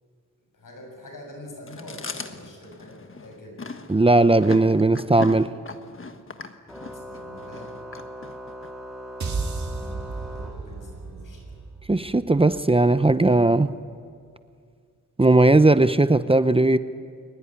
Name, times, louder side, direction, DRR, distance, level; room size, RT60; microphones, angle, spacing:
voice 1, 0.5-3.6 6.8-7.8 9.6-11.6, left 1 dB, 85° left, 2 dB, 7.1 m, -45 dB
Chewing mastication, 1.7-8.7, left 4 dB, 40° left, 1.4 m, -38 dB
voice 2, 3.9-5.5 11.9-13.7 15.2-16.8, right 2 dB, 15° right, 12 dB, 0.7 m, -18 dB
Organ, 6.7-11.2, equal, ahead, 3.8 m, -40 dB
sound 1, 9.2-13.6, right 3 dB, 60° right, 2.1 m, -34 dB
22.5 x 20.0 x 10.0 m, 2.2 s
wide cardioid pair, 110°, 32 cm